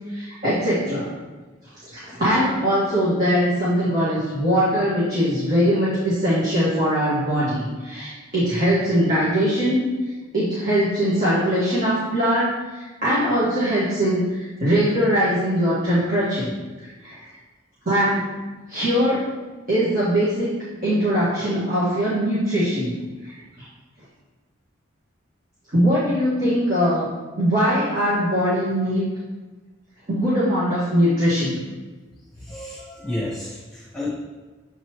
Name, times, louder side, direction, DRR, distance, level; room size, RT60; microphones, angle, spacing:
voice 1, 0.1-1.1 1.9-9.9 10.3-16.5 17.0-17.2 17.9-18.3 18.7-19.3 19.7-20.5 20.8-23.0 23.2-23.3 25.7-27.1 27.4-29.0 30.1-31.6, equal, 45° right, -11 dB, 1.8 m, -21 dB
voice 2, 32.4-34.1, left 1 dB, 5° left, -10 dB, 1.6 m, -31 dB
7.8 x 4.1 x 3.2 m, 1.3 s
head